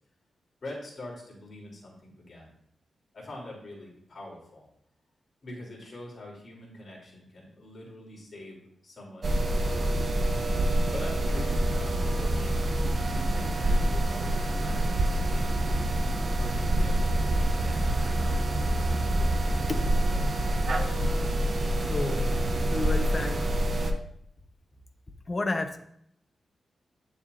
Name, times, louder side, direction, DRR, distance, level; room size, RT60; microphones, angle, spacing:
voice 1, 0.6-2.5 3.1-4.7 5.4-9.9 10.9-15.4 16.4-20.7, left 1 dB, 50° left, -3 dB, 3.5 m, -45 dB
sound 1, 9.2-23.9, right 1 dB, 45° right, 0.9 m, -26 dB
voice 2, 21.8-22.4 22.7-23.4 25.3-25.8, left 3 dB, 35° left, 6 dB, 1.0 m, -31 dB
9.8 x 7.0 x 2.7 m, 0.70 s
cardioid pair, 75°, 0 cm